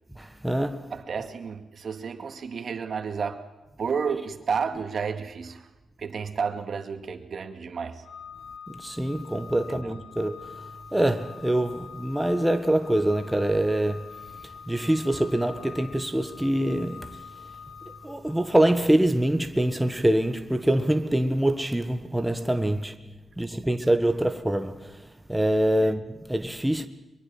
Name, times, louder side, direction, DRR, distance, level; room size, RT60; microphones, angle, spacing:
voice 1, 0.2-0.9 8.7-10.5 10.9-14.2 14.7-17.2 18.0-22.9 23.4-26.9, right 1 dB, 5° right, 1.5 m, -25 dB
voice 2, 0.9-3.4 3.8-5.7 6.0-8.1 9.7-10.0 25.8-25.9, right 6 dB, 55° right, 2.4 m, -31 dB
Organ, 8.0-18.8, left 7 dB, 75° left, 1.4 m, -45 dB
23.5 x 22.5 x 7.3 m
cardioid pair, 85°, 0 cm